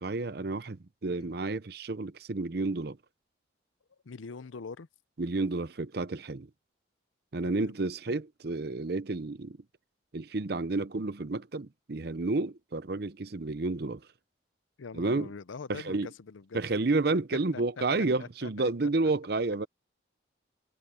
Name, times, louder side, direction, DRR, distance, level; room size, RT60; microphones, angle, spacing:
voice 1, 0.0-3.0 5.2-6.5 7.3-9.6 10.1-14.0 14.9-15.3 15.7-16.1 16.5-19.7, right 3 dB, 55° right, 0.7 m, -30 dB
voice 2, 4.0-4.9 7.4-7.7 14.8-16.6 17.5-17.6 18.2-18.7, left 4 dB, 85° left, 0.6 m, -43 dB
head